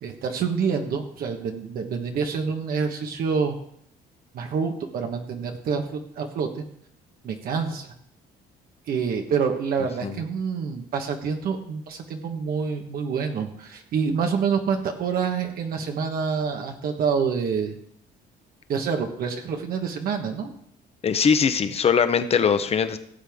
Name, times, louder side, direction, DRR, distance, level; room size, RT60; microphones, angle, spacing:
voice 1, 0.0-3.5 4.3-6.7 7.2-7.9 8.9-17.7 18.7-20.5, right 6 dB, 60° right, 3 dB, 1.3 m, -27 dB
voice 2, 21.0-23.0, left 6 dB, 35° left, 10 dB, 1.0 m, -21 dB
16.5 x 7.5 x 3.6 m, 0.69 s
cardioid pair, 110°, 17 cm